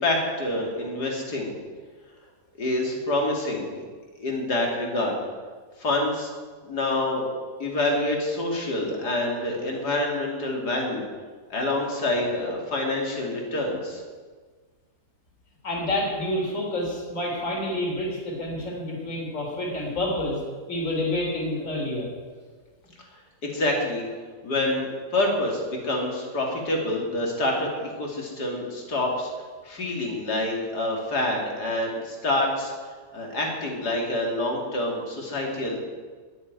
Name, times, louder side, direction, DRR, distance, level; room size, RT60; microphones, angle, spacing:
voice 1, 0.0-1.5 2.6-3.8 4.2-5.2 5.8-6.3 6.6-7.2 7.6-11.0 11.5-14.0 23.4-24.1 24.4-24.8 25.1-29.3 29.6-32.7 33.1-35.8, left 1 dB, 80° left, 0 dB, 3.4 m, -27 dB
voice 2, 15.6-20.4 20.7-22.1, left 1 dB, 50° left, -2 dB, 3.8 m, -28 dB
11.5 x 9.8 x 9.4 m, 1.5 s
omnidirectional pair, 1.7 m